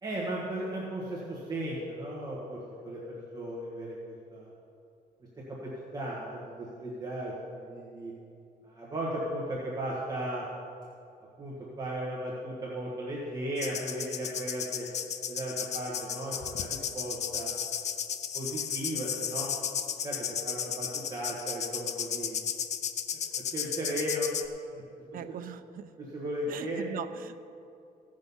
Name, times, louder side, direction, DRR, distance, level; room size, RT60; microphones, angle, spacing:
voice 1, 0.0-4.5 5.5-5.6 5.9-8.1 8.6-10.5 11.4-14.9 15.3-17.5 18.3-19.5 20.0-22.4 23.5-24.3 24.7-24.8 25.3-25.4 26.0-26.9, right 1 dB, 25° right, -6 dB, 1.5 m, -36 dB
sound 1, 13.6-24.5, left 8 dB, 45° left, 0.5 m, -34 dB
voice 2, 25.1-25.9 26.5-27.4, right 9 dB, 65° right, 10 dB, 0.5 m, -40 dB
16.0 x 6.4 x 5.5 m, 2.6 s
cardioid pair, 175°, 16 cm